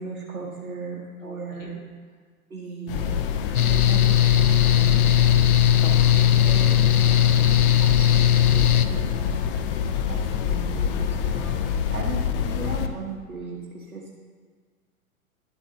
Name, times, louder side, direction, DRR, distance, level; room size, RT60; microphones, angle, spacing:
voice 1, 0.0-1.8 2.5-3.2 3.7-5.2 6.4-9.4 10.1-11.5 11.9-14.0, right 4 dB, 80° right, -2 dB, 1.4 m, -37 dB
voice 2, 1.2-1.7 4.6-5.1 5.8-6.3, left 3 dB, 65° left, 1 dB, 2.0 m, -41 dB
sound 1, 2.9-12.9, left 7 dB, 40° left, 0.7 m, -26 dB
Mechanical fan, 3.5-8.8, left 10 dB, 85° left, 0.6 m, -18 dB
11.5 x 7.3 x 4.0 m, 1.6 s
figure-of-eight pair, 105°, 43 cm